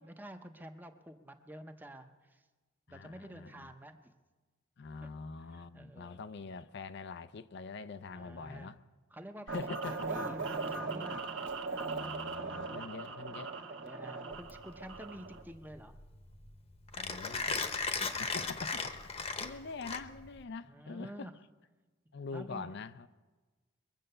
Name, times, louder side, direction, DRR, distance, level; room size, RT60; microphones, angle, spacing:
voice 1, 0.0-2.4 2.9-4.1 5.0-5.1 5.4-6.2 8.1-8.7 9.1-9.5 10.0-11.6 12.9-15.9 16.9-17.6 20.6-21.4 22.3-22.7, right 1 dB, 10° right, 0.7 m, -50 dB
voice 2, 2.9-3.7 4.8-8.8 9.5-10.1 11.8-13.5 17.0-17.6 18.2-21.3 22.1-23.1, left 4 dB, 60° left, 0.5 m, -44 dB
sound 1, 9.5-15.4, right 3 dB, 65° right, 1.3 m, -39 dB
Mechanisms, 14.3-20.4, left 4 dB, 30° left, 0.9 m, -37 dB
22.5 x 7.7 x 6.7 m
head